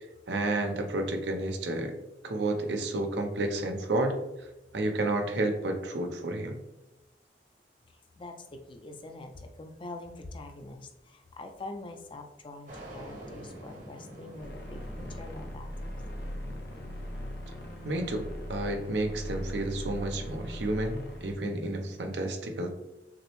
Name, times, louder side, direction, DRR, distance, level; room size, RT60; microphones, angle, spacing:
voice 1, 0.0-1.9 2.2-4.2 4.7-6.6 17.8-22.7, right 2 dB, 75° right, 5 dB, 0.6 m, -31 dB
voice 2, 7.9-15.9, left 2 dB, 30° left, 5 dB, 0.4 m, -44 dB
sound 1, 12.7-19.0, equal, 45° right, 1.0 m, -48 dB
sound 2, 14.4-21.3, equal, 65° left, 0.7 m, -40 dB
5.9 x 2.0 x 3.0 m, 0.92 s
head